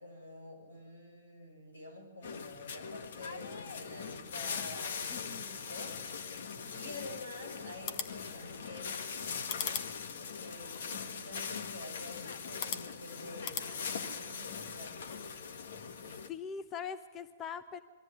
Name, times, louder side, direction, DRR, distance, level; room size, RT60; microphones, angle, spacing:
voice 1, 0.0-6.3 6.7-9.0 10.4-15.3, left 1 dB, 90° left, 3 dB, 7.2 m, -48 dB
sound 1, 2.2-16.3, left 6 dB, 65° left, 1.5 m, -41 dB
voice 2, 5.1-5.6 6.6-7.0 16.0-17.8, left 7 dB, 25° left, 11 dB, 0.9 m, -43 dB
sound 2, 7.7-13.7, left 8 dB, 45° left, 1.5 m, -43 dB
22.5 x 14.0 x 9.6 m, 1.3 s
hypercardioid pair, 125°, 0 cm